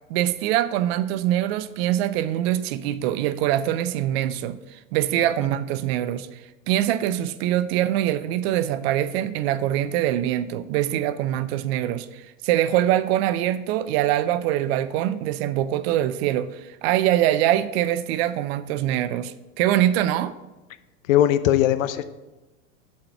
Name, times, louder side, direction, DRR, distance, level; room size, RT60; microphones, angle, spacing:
voice 1, 0.1-6.4 6.7-20.3, right 12 dB, 50° right, 0.5 m, -23 dB
voice 2, 21.1-22.0, left 12 dB, 65° left, 0.6 m, -19 dB
7.6 x 4.3 x 5.4 m
hypercardioid pair, 100°, 42 cm